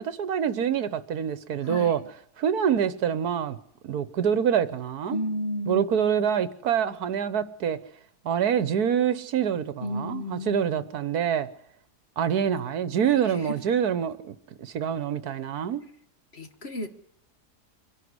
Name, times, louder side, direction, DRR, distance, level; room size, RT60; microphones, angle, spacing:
voice 1, 0.0-2.0 2.4-3.6 3.8-5.2 5.7-7.8 8.2-11.5 12.2-15.8, right 8 dB, 70° right, 1.5 m, -26 dB
voice 2, 1.6-2.1 5.1-6.1 9.8-10.9 13.2-13.6 16.3-16.9, equal, 40° left, 1.7 m, -33 dB
24.5 x 11.5 x 9.6 m
omnidirectional pair, 1.7 m